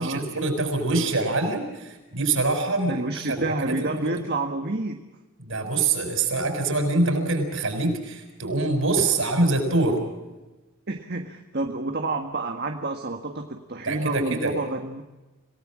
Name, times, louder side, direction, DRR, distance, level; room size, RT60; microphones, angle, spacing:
voice 1, 0.0-3.0 3.3-4.1 5.4-10.0 13.8-14.5, right 2 dB, 65° right, 5 dB, 6.2 m, -24 dB
voice 2, 2.9-5.0 10.9-15.0, right 2 dB, 50° right, 4 dB, 1.6 m, -29 dB
27.0 x 18.5 x 7.5 m, 1.1 s
head